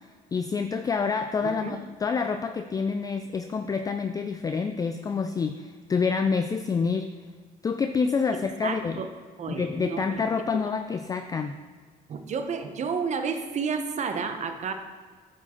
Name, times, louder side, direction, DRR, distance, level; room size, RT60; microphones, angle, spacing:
voice 1, 0.3-7.1 7.6-9.0 9.5-11.6, left 5 dB, 20° left, 8 dB, 0.3 m, -27 dB
voice 2, 1.4-1.8 8.6-9.1 9.4-10.2 12.1-14.7, right 5 dB, 45° right, 7 dB, 0.8 m, -31 dB
9.2 x 4.6 x 4.3 m, 1.5 s
cardioid pair, 110°, 17 cm